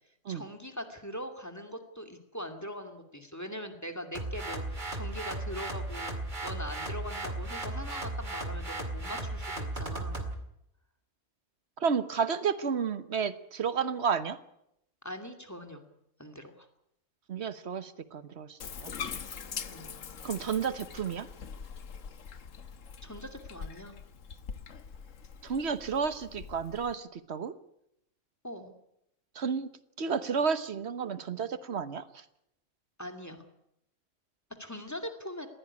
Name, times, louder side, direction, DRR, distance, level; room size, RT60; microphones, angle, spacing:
voice 1, 0.3-10.3 15.0-15.8 16.2-16.7 19.6-19.9 23.0-24.0 28.4-28.7 33.0-33.5 34.6-35.5, equal, 10° left, 7 dB, 2.4 m, -41 dB
sound 1, 4.1-10.3, right 2 dB, 35° right, 2.4 m, -36 dB
voice 2, 11.8-14.4 17.3-18.9 20.2-21.3 25.4-27.5 29.4-29.7 30.0-32.0, right 6 dB, 55° right, 13 dB, 1.3 m, -31 dB
Bathtub (filling or washing), 18.6-26.9, left 6 dB, 70° left, 1.5 m, -43 dB
20.5 x 16.0 x 9.8 m, 0.80 s
omnidirectional pair, 1.4 m